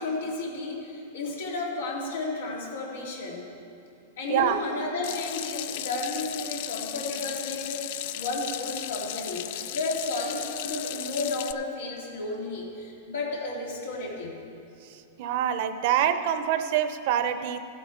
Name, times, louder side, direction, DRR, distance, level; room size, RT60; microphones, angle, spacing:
voice 1, 0.0-3.5 4.2-14.4, left 2 dB, 85° left, -2 dB, 2.5 m, -33 dB
voice 2, 4.3-4.6 15.2-17.6, right 10 dB, 50° right, 10 dB, 0.7 m, -25 dB
Water tap faucet / Sink (filling or washing), 5.0-11.5, left 12 dB, 55° left, 0.4 m, -35 dB
15.5 x 8.3 x 4.4 m, 2.7 s
supercardioid pair, 155°, 0 cm